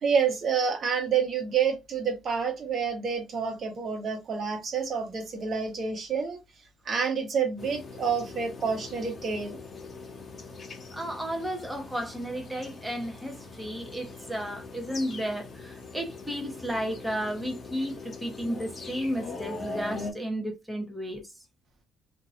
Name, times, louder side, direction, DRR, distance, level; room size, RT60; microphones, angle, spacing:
voice 1, 0.0-6.4 6.8-9.6, right 6 dB, 50° right, 1.1 m, -28 dB
sound 1, 7.6-20.1, left 3 dB, 40° left, 0.9 m, -41 dB
voice 2, 10.9-21.3, equal, 5° right, 1.0 m, -33 dB
2.8 x 2.7 x 2.5 m
cardioid pair, 100°, 0 cm